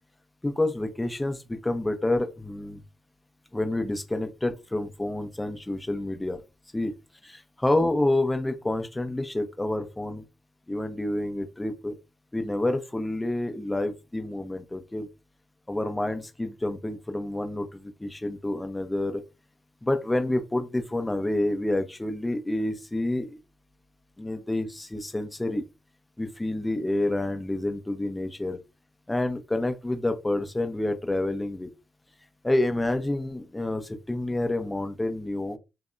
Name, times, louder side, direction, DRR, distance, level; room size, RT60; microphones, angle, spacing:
voice 1, 0.4-2.8 3.5-6.4 6.7-6.9 7.2-10.2 10.7-12.0 12.3-15.1 15.7-19.2 19.8-23.3 24.2-25.6 26.2-28.6 29.1-31.7 32.4-35.6, left 1 dB, 15° left, 0.7 m, -28 dB
2.7 x 2.2 x 2.5 m
hypercardioid pair, 45°, 0 cm